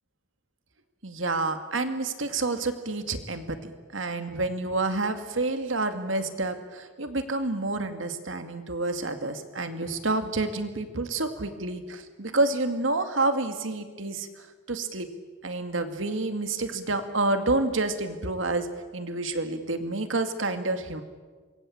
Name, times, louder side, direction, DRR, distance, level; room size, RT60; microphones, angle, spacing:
voice 1, 1.0-15.1 15.4-18.7 18.9-21.0, right 2 dB, 80° right, 8 dB, 2.3 m, -29 dB
26.5 x 23.0 x 8.8 m, 1.4 s
head